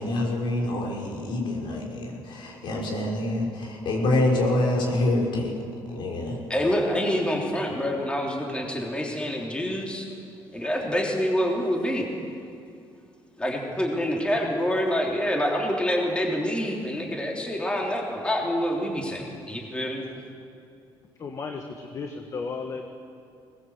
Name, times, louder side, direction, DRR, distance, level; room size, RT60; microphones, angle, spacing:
voice 1, 0.0-5.5 5.9-6.4, left 1 dB, 65° left, -1 dB, 5.2 m, -26 dB
voice 2, 6.5-10.1 10.5-12.0 13.4-20.1, equal, 10° left, 0 dB, 3.2 m, -26 dB
voice 3, 21.2-22.9, left 4 dB, 40° left, 4 dB, 1.6 m, -34 dB
21.0 x 19.5 x 8.1 m, 2.4 s
cardioid pair, 130°, 9 cm